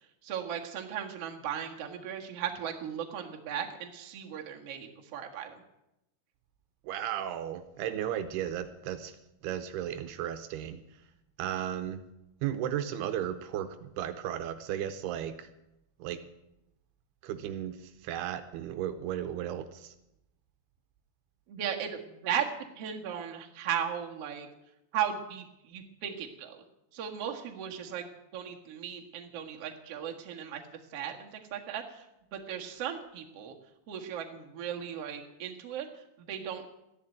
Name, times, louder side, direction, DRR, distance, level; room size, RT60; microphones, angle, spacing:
voice 1, 0.2-5.6 21.5-22.5 22.8-24.5 24.9-26.6 26.9-28.1 28.3-30.6 30.9-32.1 32.3-33.5 33.9-36.7, right 9 dB, 50° right, 2 dB, 2.1 m, -36 dB
voice 2, 6.8-9.2 9.4-10.8 11.4-12.0 12.4-15.5 16.0-16.2 17.2-19.9, right 10 dB, 80° right, 10 dB, 2.8 m, -35 dB
14.0 x 11.0 x 9.0 m, 0.87 s
omnidirectional pair, 4.7 m